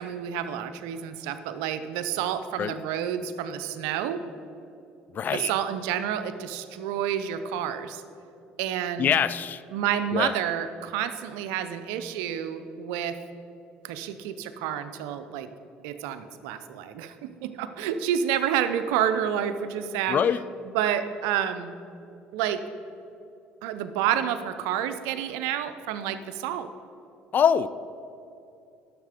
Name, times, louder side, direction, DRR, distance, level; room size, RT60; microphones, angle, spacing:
voice 1, 0.0-4.2 5.3-8.0 8.6-9.1 9.7-13.2 13.8-15.5 15.8-20.2 20.7-21.8 22.3-22.6 23.6-26.7, right 9 dB, 80° right, 10 dB, 0.6 m, -29 dB
voice 2, 5.1-5.5 9.0-9.6 10.1-10.3 20.1-20.4 27.3-27.7, left 8 dB, 45° left, 15 dB, 0.4 m, -24 dB
10.0 x 6.6 x 5.0 m, 2.7 s
supercardioid pair, 75°, 4 cm